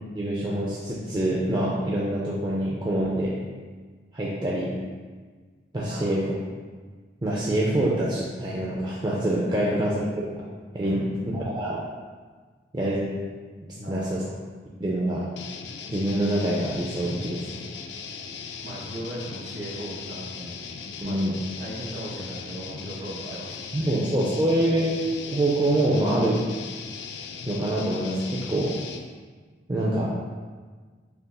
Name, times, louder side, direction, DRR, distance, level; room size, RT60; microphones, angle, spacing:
voice 1, 0.2-3.3 4.1-4.7 5.7-6.3 7.2-10.5 10.7-11.1 11.3-11.8 12.7-13.0 13.9-14.2 14.8-15.2 15.9-17.6 21.0-21.3 23.7-25.0 25.3-26.5 27.5-28.7 29.7-30.1, right 1 dB, 25° right, -5 dB, 0.4 m, -25 dB
voice 2, 10.8-11.4 13.7-14.3 18.6-20.6 21.0-24.0, right 1 dB, 80° right, -4 dB, 1.0 m, -38 dB
sound 1, 15.4-29.1, left 5 dB, 80° left, 0.3 m, -38 dB
6.7 x 2.6 x 2.2 m, 1.5 s
head